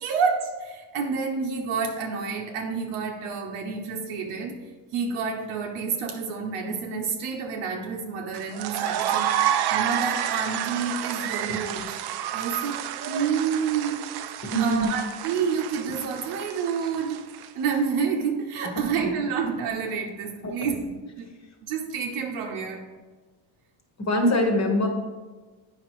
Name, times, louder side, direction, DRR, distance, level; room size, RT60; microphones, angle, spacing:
voice 1, 0.0-12.0 12.3-14.1 14.6-17.2 17.5-21.3 21.6-22.9, right 6 dB, 90° right, 1 dB, 0.9 m, -29 dB
sound 1, 8.3-17.7, right 10 dB, 55° right, 0.5 m, -30 dB
voice 2, 14.4-14.9 18.8-19.1 20.4-20.7 24.0-24.9, equal, 30° left, 3 dB, 1.2 m, -24 dB
8.5 x 5.6 x 3.1 m, 1.4 s
cardioid pair, 125°, 50 cm